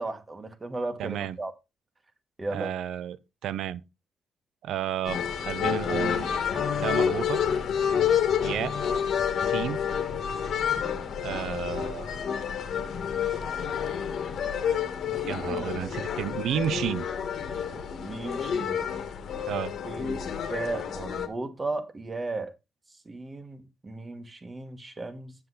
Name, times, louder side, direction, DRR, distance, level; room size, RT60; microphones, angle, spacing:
voice 1, 0.0-1.5 2.4-2.7 15.1-16.0 17.5-17.6 18.0-18.8 19.5-19.6 19.8-22.5 23.0-25.3, right 2 dB, 20° right, 1.3 m, -36 dB
voice 2, 1.0-1.4 2.5-3.2 3.4-3.8 4.6-6.3 6.8-7.4 8.4-8.7 9.4-9.8 11.2-12.2 15.3-17.1 17.7-17.8 19.5-19.7, right 10 dB, 80° right, 0.7 m, -32 dB
sound 1, 5.0-21.3, left 8 dB, 60° left, 1.6 m, -29 dB
8.6 x 8.1 x 4.0 m
cardioid pair, 160°, 0 cm